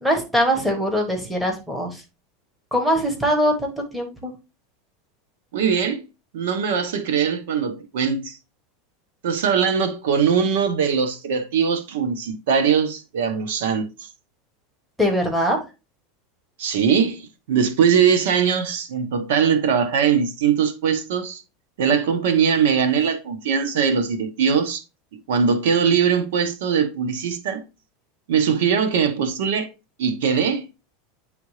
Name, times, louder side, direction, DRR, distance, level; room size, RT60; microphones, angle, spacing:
voice 1, 0.0-2.0 2.7-4.3 15.0-15.6, equal, 5° right, 1.3 m, -22 dB
voice 2, 5.5-6.0 6.3-8.4 9.2-13.9 16.6-21.4 21.8-24.8 25.1-27.6 28.3-29.7 30.0-30.7, right 7 dB, 85° right, 1.2 m, -21 dB
9.6 x 3.5 x 3.2 m
supercardioid pair, 160°, 0 cm